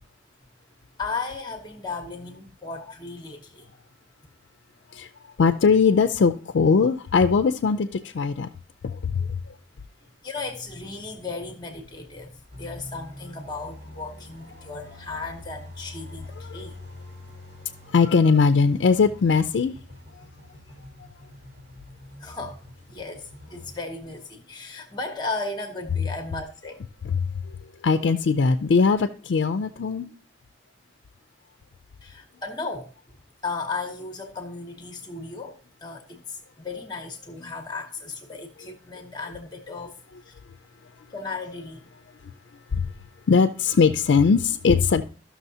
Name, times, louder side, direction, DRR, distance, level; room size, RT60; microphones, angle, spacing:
voice 1, 1.0-3.7 10.2-16.8 22.2-22.6 22.9-26.8 32.0-32.9 33.4-40.0 40.2-40.4 41.1-41.9, left 3 dB, 25° left, 0.8 m, -35 dB
voice 2, 5.4-8.5 8.8-9.4 16.5-16.6 17.9-19.7 27.1-27.5 27.8-30.1 42.7-42.9 43.3-45.0, left 5 dB, 75° left, 0.4 m, -20 dB
sound 1, 12.5-23.8, left 1 dB, 70° right, 2.1 m, -45 dB
13.5 x 6.1 x 2.7 m
head